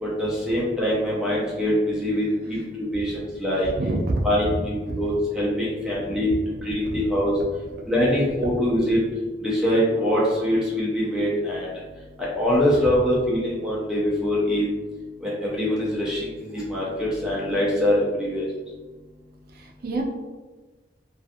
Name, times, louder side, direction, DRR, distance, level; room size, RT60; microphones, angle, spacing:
voice 1, 0.0-2.6 2.9-3.7 4.2-6.3 6.6-7.3 7.9-9.0 9.4-11.7 12.2-14.6 15.2-18.5, equal, 5° right, -7 dB, 0.5 m, -23 dB
voice 2, 3.6-4.3 4.8-5.1 6.1-6.2 6.8-7.0 19.5-20.0, right 2 dB, 55° right, 0 dB, 0.4 m, -28 dB
2.4 x 2.3 x 2.6 m, 1.3 s
head